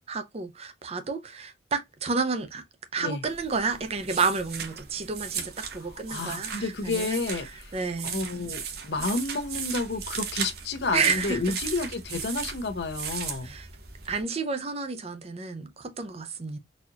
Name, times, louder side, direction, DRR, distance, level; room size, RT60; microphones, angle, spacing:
voice 1, 0.1-2.6 2.9-7.2 7.7-8.1 10.9-11.5 13.4-13.7 14.1-16.6, right 4 dB, 35° right, 0.5 m, -30 dB
sound 1, 3.2-14.2, right 7 dB, 60° right, 0.8 m, -37 dB
voice 2, 5.8-7.7 8.0-13.6, left 3 dB, 70° left, 0.7 m, -31 dB
4.1 x 2.4 x 2.8 m
head